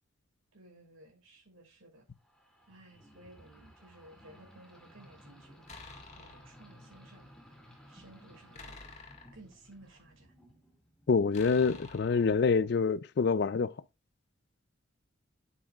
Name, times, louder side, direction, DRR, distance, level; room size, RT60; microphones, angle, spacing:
voice 1, 0.5-2.0 2.7-5.7 6.2-7.3 7.9-8.8 9.3-10.3, right 1 dB, 90° right, 5.4 m, -56 dB
sound 1, 2.2-11.5, equal, 5° left, 2.6 m, -57 dB
sound 2, 5.7-6.6 8.5-10.1 11.3-12.8, left 3 dB, 35° left, 1.9 m, -50 dB
voice 2, 11.1-13.7, left 5 dB, 55° left, 0.4 m, -26 dB
10.0 x 8.7 x 2.4 m
head